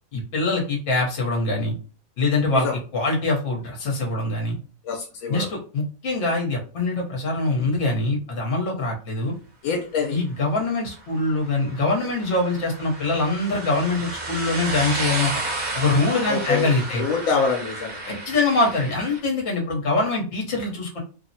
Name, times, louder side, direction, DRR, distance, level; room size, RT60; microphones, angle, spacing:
voice 1, 0.1-1.7 2.2-2.7 2.9-4.6 5.3-9.3 10.1-15.3 15.7-17.0 18.1-21.0, left 2 dB, 60° left, -1 dB, 1.1 m, -23 dB
voice 2, 4.8-5.5 9.6-10.2 16.1-16.7 16.9-18.2, left 5 dB, 80° left, 2 dB, 1.0 m, -26 dB
sound 1, 11.0-19.2, right 2 dB, 80° right, 1.4 m, -32 dB
3.1 x 2.0 x 2.7 m, 0.38 s
omnidirectional pair, 1.5 m